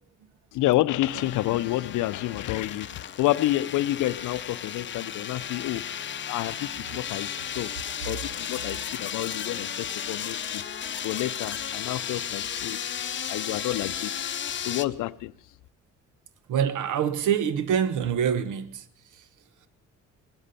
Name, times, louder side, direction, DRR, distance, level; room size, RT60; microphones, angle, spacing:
voice 1, 0.5-7.7 8.0-10.6 11.0-12.8 13.3-14.4 14.6-15.3, left 16 dB, 80° left, 0.5 m, -29 dB
sound 1, 1.0-14.8, left 8 dB, 40° left, 0.6 m, -34 dB
voice 2, 16.5-18.8 19.2-19.3, right 8 dB, 80° right, 1.0 m, -25 dB
19.5 x 10.5 x 5.6 m
cardioid pair, 90°, 30 cm